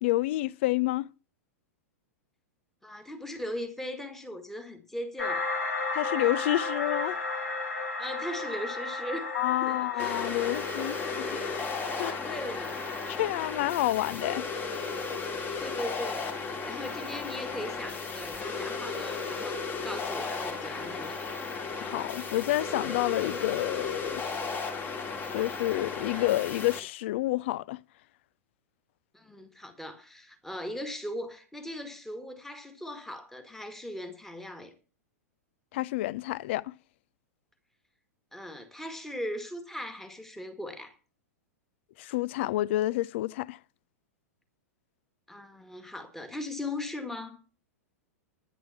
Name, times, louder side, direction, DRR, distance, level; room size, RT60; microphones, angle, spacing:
voice 1, 0.0-1.1 5.9-7.2 9.3-11.4 11.9-12.2 13.1-14.4 21.8-24.2 25.0-27.8 35.7-36.7 42.0-43.6, left 16 dB, 50° left, 0.5 m, -29 dB
voice 2, 2.8-5.4 8.0-9.3 9.6-11.6 12.0-12.9 15.3-16.4 16.6-21.2 29.1-34.7 38.3-40.9 45.3-47.4, left 1 dB, 5° left, 2.0 m, -39 dB
sound 1, 5.2-13.8, left 3 dB, 80° left, 3.8 m, -35 dB
sound 2, 10.0-26.8, left 4 dB, 25° left, 2.4 m, -35 dB
10.0 x 10.0 x 5.9 m
figure-of-eight pair, 100°, 8 cm